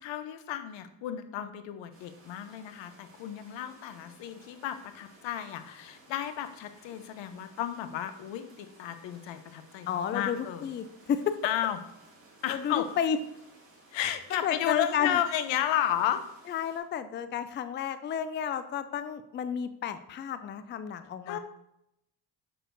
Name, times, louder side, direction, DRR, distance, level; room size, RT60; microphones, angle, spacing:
voice 1, 0.0-10.7 11.4-11.8 12.4-13.0 13.9-16.2 21.3-21.4, left 11 dB, 80° left, 10 dB, 0.8 m, -33 dB
sound 1, 1.9-16.8, right 2 dB, 30° right, 2.5 m, -58 dB
voice 2, 9.9-11.4 12.5-13.2 14.4-15.2 16.5-21.4, left 8 dB, 25° left, 11 dB, 0.4 m, -31 dB
6.6 x 6.3 x 2.6 m, 0.80 s
cardioid pair, 90°, 45 cm